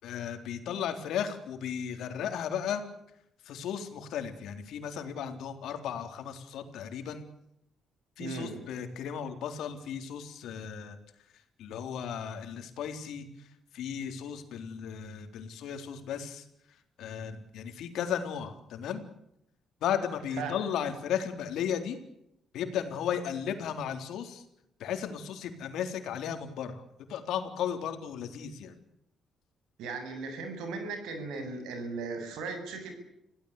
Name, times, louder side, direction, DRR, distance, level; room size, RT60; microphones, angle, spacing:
voice 1, 0.0-2.8 3.5-7.3 8.2-11.0 11.6-13.3 13.7-16.4 17.0-19.0 19.8-22.0 22.5-24.4 24.8-26.8 27.1-28.8, left 8 dB, 80° left, 7 dB, 3.7 m, -35 dB
voice 2, 8.2-8.7 20.4-20.6 29.8-32.9, right 4 dB, 85° right, 7 dB, 7.6 m, -37 dB
28.0 x 17.0 x 8.5 m, 0.79 s
cardioid pair, 90°, 0 cm